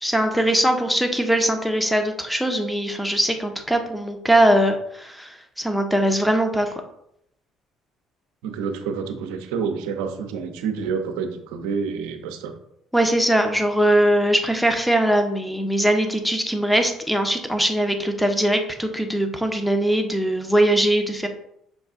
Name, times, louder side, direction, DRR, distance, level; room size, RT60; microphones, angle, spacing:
voice 1, 0.0-6.8 12.9-21.3, right 1 dB, ahead, 5 dB, 0.8 m, -21 dB
voice 2, 8.4-12.5, right 6 dB, 80° right, 6 dB, 0.6 m, -28 dB
6.3 x 2.3 x 3.6 m, 0.76 s
supercardioid pair, 65°, 0 cm